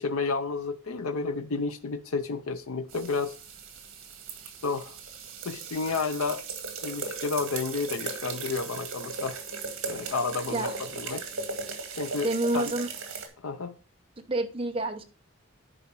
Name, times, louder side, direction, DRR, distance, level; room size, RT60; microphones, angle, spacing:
voice 1, 0.0-3.4 4.6-5.0 5.4-6.5 6.8-9.4 9.9-11.2 12.0-12.3 12.5-12.7 13.4-13.8, left 4 dB, 85° left, 0.6 m, -31 dB
sound 1, 2.9-13.3, right 4 dB, 70° right, 2.0 m, -37 dB
voice 2, 12.2-12.9 14.3-15.0, right 2 dB, 25° right, 0.8 m, -28 dB
10.0 x 4.9 x 4.6 m
head